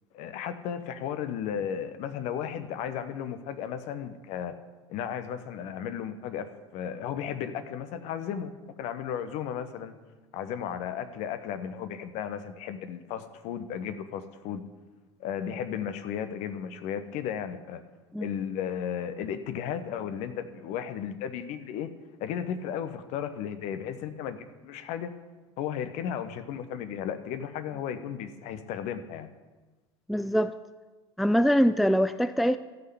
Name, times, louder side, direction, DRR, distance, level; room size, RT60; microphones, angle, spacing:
voice 1, 0.1-4.5 4.9-6.5 6.7-8.5 8.8-9.9 10.3-14.6 15.2-17.8 18.2-21.9 22.2-25.1 25.6-29.3, left 8 dB, 50° left, 10 dB, 1.0 m, -34 dB
voice 2, 30.1-30.5 31.2-32.6, equal, ahead, 13 dB, 0.3 m, -23 dB
13.0 x 5.7 x 8.1 m, 1.2 s
figure-of-eight pair, 65°, 15 cm